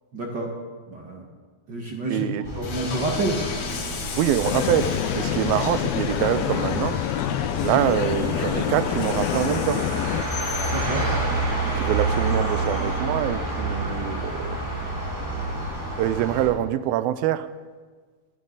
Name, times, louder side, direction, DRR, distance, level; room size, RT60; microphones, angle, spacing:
voice 1, 0.1-0.5 0.9-1.2 1.7-2.2 2.5-3.4 10.7-11.0, right 2 dB, 45° right, -1 dB, 1.5 m, -28 dB
voice 2, 2.1-2.4 4.2-7.0 7.6-9.8 11.7-14.6 16.0-17.5, right 12 dB, 85° right, 14 dB, 2.4 m, -25 dB
sound 1, 2.4-16.5, right 2 dB, 5° right, 5.3 m, -29 dB
Train, 2.6-13.0, left 4 dB, 55° left, 3.0 m, -36 dB
sound 2, 4.4-10.2, left 13 dB, 90° left, 2.4 m, -27 dB
22.5 x 13.0 x 4.0 m, 1.5 s
omnidirectional pair, 4.2 m